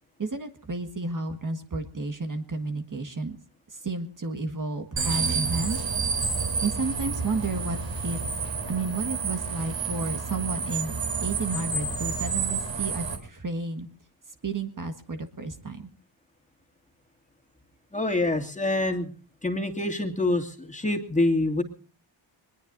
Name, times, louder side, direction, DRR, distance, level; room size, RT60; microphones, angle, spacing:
voice 1, 0.2-3.4 3.8-5.8 6.6-7.8 8.0-8.2 8.7-10.9 11.2-13.9 14.4-15.8, right 3 dB, 40° right, 6 dB, 1.7 m, -31 dB
sound 1, 5.0-13.2, right 5 dB, 60° right, 3.9 m, -29 dB
voice 2, 17.9-19.1 19.4-21.6, left 2 dB, 15° left, 3 dB, 2.5 m, -26 dB
23.0 x 21.0 x 2.6 m, 0.38 s
cardioid pair, 75°, 50 cm